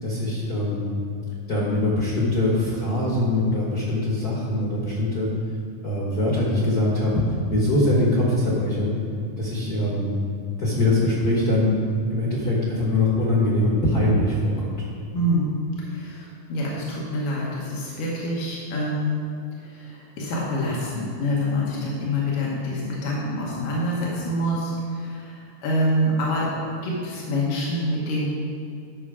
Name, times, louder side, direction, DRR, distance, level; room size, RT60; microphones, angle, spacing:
voice 1, 0.0-0.9 1.5-5.3 5.8-7.1 7.5-8.9 9.4-10.1 10.6-11.7 12.1-14.9, left 1 dB, 50° left, -5 dB, 1.1 m, -22 dB
voice 2, 15.1-15.5 15.8-19.2 19.6-28.3, equal, 90° left, -5 dB, 3.0 m, -26 dB
12.0 x 6.2 x 4.9 m, 2.5 s
omnidirectional pair, 3.7 m